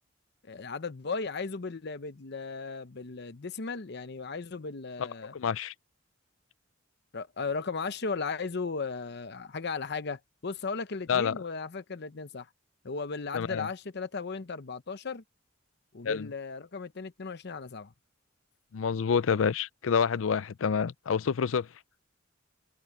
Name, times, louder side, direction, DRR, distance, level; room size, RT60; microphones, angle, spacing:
voice 1, 0.4-5.3 7.1-12.5 12.8-15.2 15.9-17.9, left 4 dB, 60° left, 0.8 m, -36 dB
voice 2, 5.3-5.7 11.1-11.3 13.3-13.7 16.0-16.3 18.7-21.7, left 6 dB, 85° left, 0.5 m, -28 dB
head